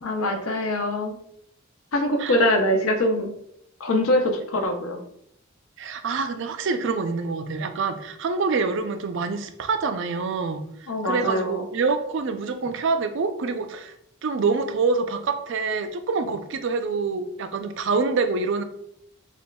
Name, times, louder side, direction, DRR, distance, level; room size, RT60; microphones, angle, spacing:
voice 1, 0.0-1.2 1.9-3.3 3.8-5.0 10.9-11.6, left 1 dB, 85° left, 4 dB, 0.7 m, -23 dB
voice 2, 5.8-10.6 11.0-13.9 14.2-18.6, right 4 dB, 60° right, 8 dB, 0.4 m, -26 dB
6.9 x 2.4 x 2.2 m, 0.75 s
head